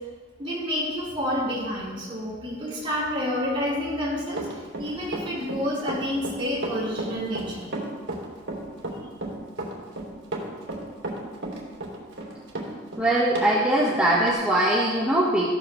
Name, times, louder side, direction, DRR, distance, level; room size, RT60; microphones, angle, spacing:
voice 1, 0.4-4.5 4.8-7.7, left 1 dB, 30° right, -8 dB, 4.5 m, -29 dB
Run, 4.3-13.5 13.8-13.9 14.3-14.4, right 2 dB, 75° right, 2.9 m, -33 dB
voice 2, 13.0-15.5, right 1 dB, 5° right, -7 dB, 1.6 m, -21 dB
15.0 x 13.0 x 3.3 m, 1.4 s
head